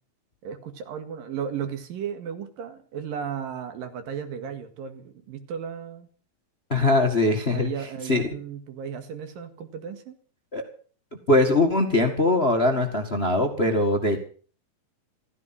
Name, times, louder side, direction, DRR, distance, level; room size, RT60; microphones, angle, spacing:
voice 1, 0.4-6.1 7.5-10.2, right 7 dB, 75° right, 8 dB, 3.6 m, -35 dB
voice 2, 6.7-7.7 8.1-8.2 10.5-10.6 11.3-14.2, left 2 dB, 25° left, 5 dB, 1.3 m, -21 dB
15.0 x 15.0 x 6.0 m, 0.43 s
omnidirectional pair, 4.1 m